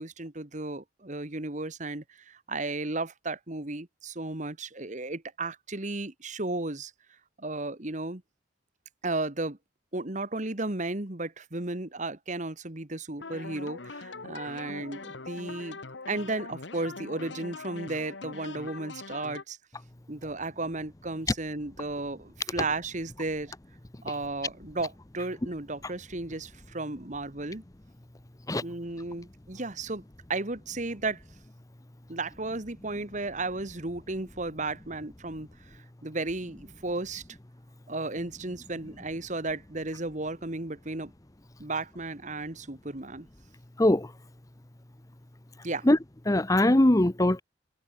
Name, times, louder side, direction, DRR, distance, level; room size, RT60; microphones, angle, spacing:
voice 1, 0.0-6.9 7.4-8.2 9.0-9.6 9.9-15.8 16.1-19.6 20.1-23.5 24.0-27.6 28.6-30.0 30.3-31.2 32.1-37.2 37.9-41.1 41.6-43.3 45.6-45.9, right 2 dB, 40° right, 1.8 m, -34 dB
sound 1, 13.2-19.4, left 3 dB, 70° left, 1.6 m, -42 dB
voice 2, 46.3-47.4, left 1 dB, 20° left, 0.8 m, -21 dB
head